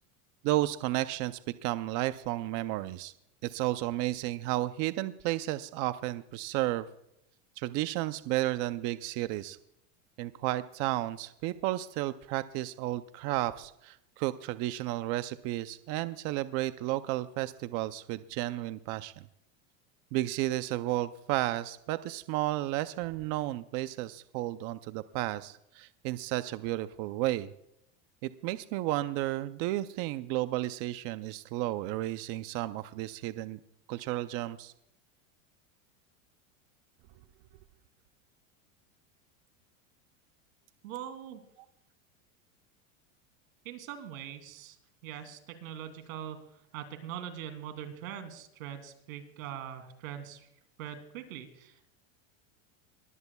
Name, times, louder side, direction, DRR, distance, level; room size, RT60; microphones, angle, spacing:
voice 1, 0.4-3.1 3.4-6.9 7.6-9.6 10.2-19.2 20.1-27.5 28.2-33.6 33.9-34.7, right 16 dB, 40° right, 12 dB, 0.5 m, -32 dB
voice 2, 40.8-41.4 43.6-44.8 45.0-46.4 46.7-50.5 50.8-51.9, right 10 dB, 80° right, 8 dB, 2.8 m, -42 dB
22.0 x 15.0 x 2.3 m, 0.79 s
supercardioid pair, 160°, 40 cm